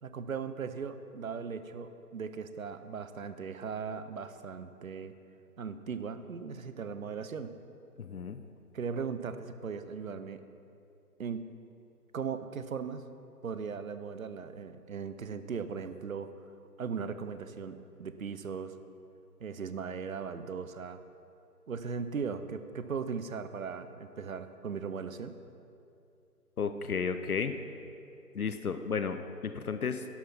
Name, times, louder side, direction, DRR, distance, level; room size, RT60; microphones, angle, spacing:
voice 1, 0.0-5.1 5.6-7.6 8.7-10.4 11.2-11.5 12.1-13.0 13.4-16.5 16.8-18.8 19.4-21.0 21.7-25.3, right 6 dB, 55° right, 11 dB, 0.6 m, -38 dB
voice 2, 8.0-8.4 26.6-27.6 28.3-30.1, left 6 dB, 65° left, 9 dB, 0.7 m, -33 dB
11.5 x 6.4 x 5.8 m, 2.6 s
figure-of-eight pair, 160°, 49 cm